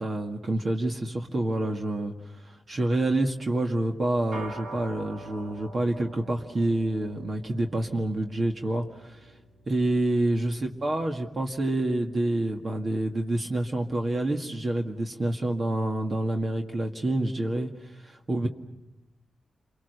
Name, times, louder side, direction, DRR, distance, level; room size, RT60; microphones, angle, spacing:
voice 1, 0.0-9.3 9.7-18.5, right 1 dB, 40° right, 3 dB, 1.9 m, -28 dB
sound 1, 4.3-13.8, right 2 dB, 75° right, 2.8 m, -47 dB
30.0 x 23.5 x 6.8 m, 0.94 s
cardioid pair, 95°, 0 cm